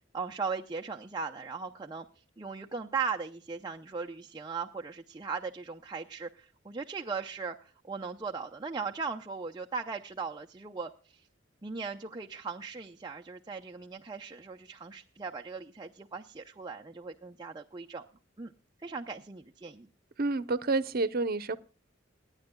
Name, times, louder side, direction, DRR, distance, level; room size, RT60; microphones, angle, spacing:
voice 1, 0.1-7.6 7.8-11.3 11.6-18.1 18.4-18.5 18.8-19.9, right 5 dB, 25° right, 2 dB, 0.6 m, -38 dB
voice 2, 20.2-21.6, right 3 dB, 50° right, 13 dB, 0.8 m, -29 dB
28.5 x 9.8 x 2.3 m, 0.37 s
head